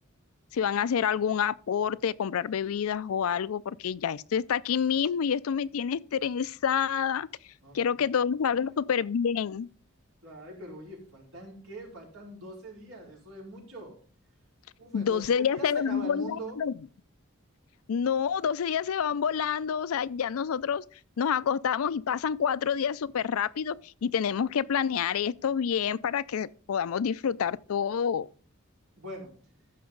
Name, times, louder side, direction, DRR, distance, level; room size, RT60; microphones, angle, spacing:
voice 1, 0.5-7.3 7.7-9.7 14.9-16.7 17.9-20.8 21.2-28.3, left 7 dB, 80° left, 0.4 m, -28 dB
voice 2, 7.6-8.0 10.2-14.0 14.8-16.6 29.0-29.3, right 1 dB, 85° right, 4.6 m, -43 dB
14.0 x 5.8 x 3.9 m
head